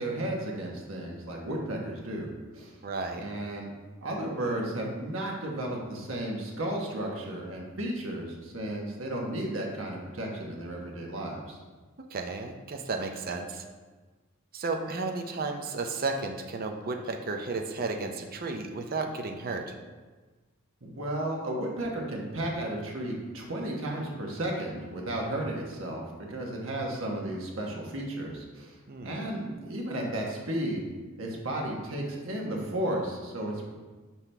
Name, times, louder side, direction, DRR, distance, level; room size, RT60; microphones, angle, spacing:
voice 1, 0.0-2.7 3.2-3.7 4.0-11.6 20.8-26.0 26.3-28.8 29.0-30.8 31.2-33.7, right 1 dB, 70° right, -1 dB, 1.3 m, -33 dB
voice 2, 2.8-3.2 12.1-13.6 14.5-19.7 28.9-29.2, right 3 dB, 45° right, 4 dB, 0.5 m, -33 dB
6.0 x 5.8 x 3.4 m, 1.3 s
head